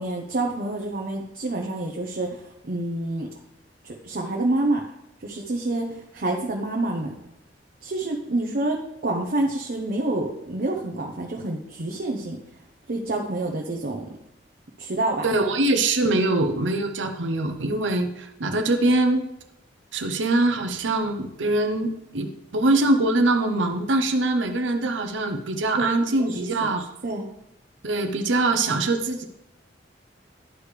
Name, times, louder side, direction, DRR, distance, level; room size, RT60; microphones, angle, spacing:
voice 1, 0.0-3.3 3.8-4.8 5.2-7.1 7.8-8.8 9.0-12.4 12.9-14.1 14.8-15.2 25.8-25.9 26.2-26.7 27.0-27.3, right 2 dB, 55° right, 1 dB, 0.8 m, -27 dB
voice 2, 15.2-19.3 19.9-26.9 27.8-29.2, right 2 dB, 90° right, 6 dB, 0.8 m, -23 dB
11.5 x 5.0 x 3.2 m, 0.85 s
head